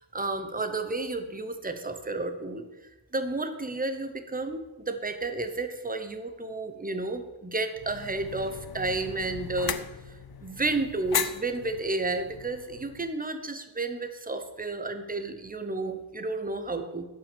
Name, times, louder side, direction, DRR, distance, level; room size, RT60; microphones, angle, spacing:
voice 1, 0.0-2.6 3.1-9.8 10.4-17.1, right 3 dB, 20° right, 8 dB, 0.8 m, -32 dB
sound 1, 7.8-13.1, left 8 dB, 50° left, 0.6 m, -37 dB
8.2 x 5.7 x 6.9 m, 1.0 s
wide cardioid pair, 100°, 47 cm